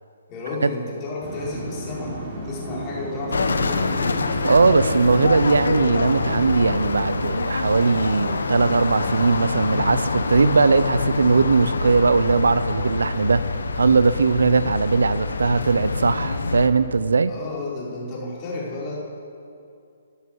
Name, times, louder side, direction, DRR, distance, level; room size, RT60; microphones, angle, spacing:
voice 1, 0.3-3.9 17.3-19.0, left 2 dB, 25° left, -6 dB, 5.0 m, -32 dB
sound 1, 1.2-6.5, right 2 dB, 35° right, 3.6 m, -34 dB
sound 2, 3.3-16.7, left 3 dB, 85° left, 1.2 m, -25 dB
voice 2, 4.4-13.4 13.8-17.3, right 4 dB, 85° right, 14 dB, 0.7 m, -19 dB
14.0 x 11.0 x 7.8 m, 2.4 s
hypercardioid pair, 150°, 0 cm